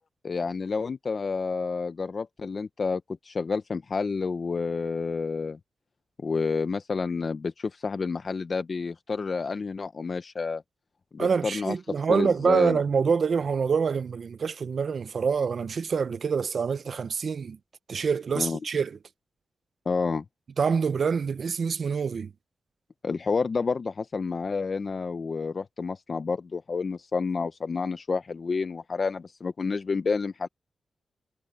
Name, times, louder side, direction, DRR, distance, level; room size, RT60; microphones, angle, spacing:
voice 1, 0.2-5.6 6.2-10.6 11.1-12.8 18.3-18.6 19.9-20.2 23.0-30.5, left 4 dB, 40° left, 0.7 m, -29 dB
voice 2, 11.2-17.6 17.9-19.0 20.6-22.3, right 5 dB, 55° right, 0.6 m, -26 dB
wide cardioid pair, 140°, 0 cm